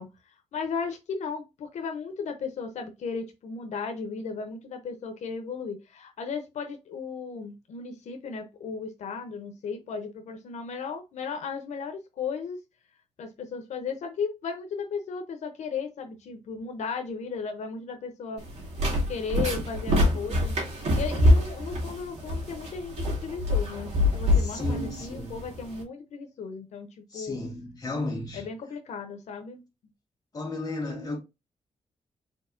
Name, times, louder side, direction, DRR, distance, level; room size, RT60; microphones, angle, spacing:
voice 1, 0.0-12.6 13.2-18.5 19.1-26.9 27.1-27.4 28.3-29.6, left 5 dB, 90° left, 0.7 m, -35 dB
sound 1, 18.4-25.8, left 1 dB, 70° right, 2.5 m, -25 dB
voice 2, 24.4-25.4 27.1-28.5 30.3-31.2, left 2 dB, 35° left, 1.8 m, -34 dB
4.5 x 4.3 x 2.6 m
wide cardioid pair, 160°, 12 cm